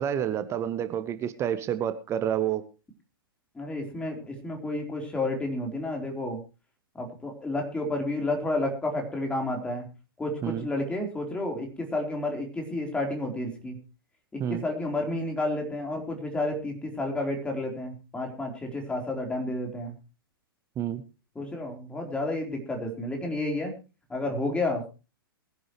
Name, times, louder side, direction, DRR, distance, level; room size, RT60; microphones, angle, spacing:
voice 1, 0.0-2.6 10.4-10.7 14.4-14.6 20.8-21.0, right 10 dB, 20° right, 1.0 m, -29 dB
voice 2, 3.6-6.4 6.9-9.9 10.2-13.8 14.3-19.9 21.4-23.7 24.1-24.9, left 2 dB, 10° left, 4.1 m, -31 dB
21.5 x 11.0 x 3.2 m
figure-of-eight pair, 110°, 12 cm